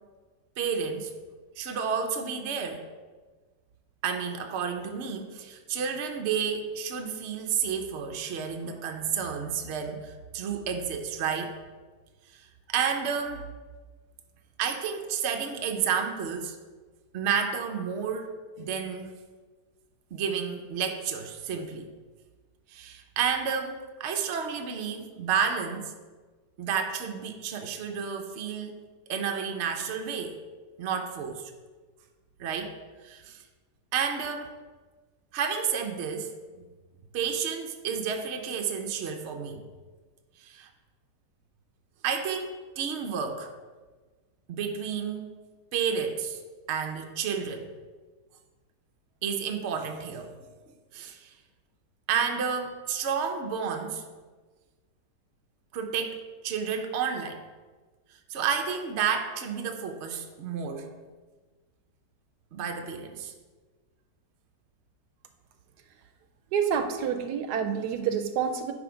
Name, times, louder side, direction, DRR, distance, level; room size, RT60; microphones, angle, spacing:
voice 1, 0.6-1.1 1.6-2.8 4.0-11.6 12.7-13.5 14.6-16.6 17.1-19.1 20.1-21.9 22.7-25.9 26.6-28.8 29.1-30.4 30.8-31.5 32.4-32.8 33.0-33.4 33.9-34.5 35.3-36.3 37.1-39.6 40.4-40.7 42.0-43.5 44.5-45.3 45.7-46.4 46.7-47.7 49.2-50.3 50.9-51.3 52.1-54.0 55.7-57.4 58.3-60.9 62.5-63.3, right 7 dB, 55° right, 4 dB, 0.8 m, -31 dB
voice 2, 66.5-68.7, right 7 dB, 75° right, 8 dB, 1.2 m, -28 dB
9.7 x 3.4 x 5.0 m, 1.4 s
omnidirectional pair, 1.8 m